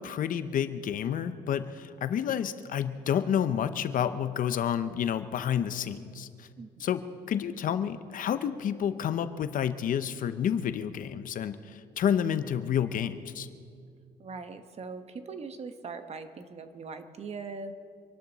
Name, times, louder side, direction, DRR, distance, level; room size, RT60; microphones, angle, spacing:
voice 1, 0.0-6.5 6.8-13.5, left 9 dB, 55° left, 11 dB, 0.8 m, -30 dB
voice 2, 6.6-6.9 14.2-17.7, right 4 dB, 40° right, 9 dB, 1.2 m, -41 dB
26.0 x 12.0 x 4.1 m, 2.2 s
cardioid pair, 110°, 17 cm